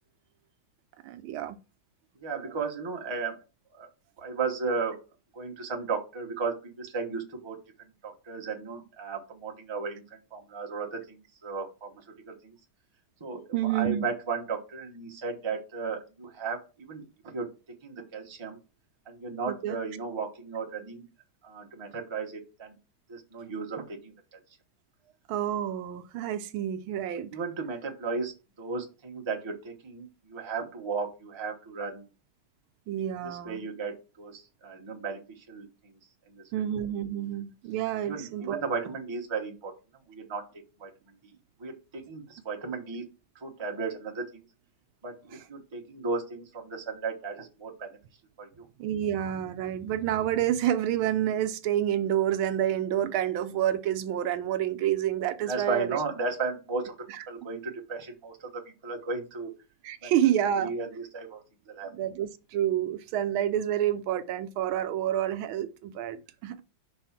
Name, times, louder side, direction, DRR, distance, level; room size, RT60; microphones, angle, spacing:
voice 1, 1.0-1.6 13.5-14.1 19.5-19.8 25.3-27.3 32.9-33.6 36.5-38.6 48.8-56.0 59.8-60.7 61.9-66.6, right 11 dB, 80° right, 1.4 m, -28 dB
voice 2, 2.2-3.4 3.8-3.9 4.2-5.0 5.3-12.5 13.2-17.5 17.8-18.6 19.1-21.1 21.4-22.7 23.1-24.4 27.3-32.1 33.2-35.9 36.3-36.4 38.0-39.7 40.1-40.4 40.8-40.9 41.6-43.0 43.3-44.4 45.0-48.0 48.4-48.7 55.4-56.9 57.3-59.5 60.0-60.1 60.6-61.9, right 4 dB, 20° right, 0.8 m, -35 dB
5.5 x 3.5 x 5.8 m
omnidirectional pair, 2.3 m